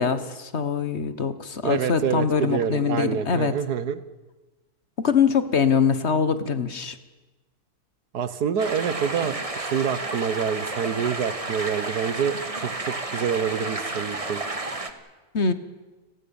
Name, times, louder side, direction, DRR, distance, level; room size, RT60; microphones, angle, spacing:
voice 1, 0.0-3.5 5.0-6.9 15.3-15.5, left 6 dB, 45° left, 12 dB, 1.4 m, -23 dB
voice 2, 1.6-4.0 8.1-14.4, right 7 dB, 70° right, 13 dB, 1.7 m, -27 dB
sound 1, 8.6-14.9, right 2 dB, 20° right, 1.5 m, -31 dB
30.0 x 18.0 x 7.1 m, 1.2 s
omnidirectional pair, 1.7 m